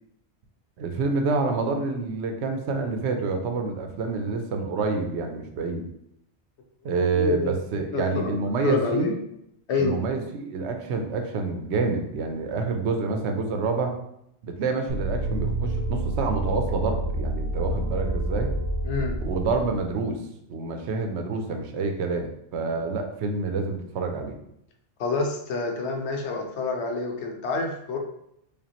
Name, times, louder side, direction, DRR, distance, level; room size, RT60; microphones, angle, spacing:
voice 1, 0.8-5.8 6.8-9.1 9.8-14.0 14.4-18.5 19.2-20.2 20.5-24.4, right 4 dB, 80° right, 5 dB, 0.9 m, -27 dB
voice 2, 7.1-9.1 9.7-10.0 18.8-19.1 25.0-28.0, left 3 dB, 80° left, 2 dB, 1.0 m, -28 dB
sound 1, 14.9-19.9, right 1 dB, 55° left, 1.6 m, -28 dB
5.1 x 2.4 x 2.8 m, 0.78 s
omnidirectional pair, 1.1 m